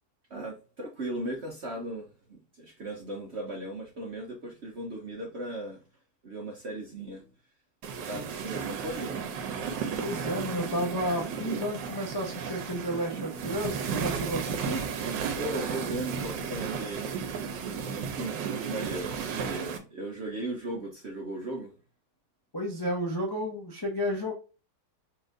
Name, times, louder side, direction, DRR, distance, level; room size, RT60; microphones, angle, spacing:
voice 1, 0.3-5.8 6.2-7.3 8.0-9.1 15.3-17.1 17.8-21.7, right 1 dB, 50° right, 0.8 m, -37 dB
sound 1, 7.8-19.8, right 6 dB, 80° right, 1.4 m, -34 dB
voice 2, 10.0-14.8 22.5-24.3, equal, 30° left, 0.4 m, -32 dB
4.2 x 3.2 x 2.5 m
omnidirectional pair, 2.0 m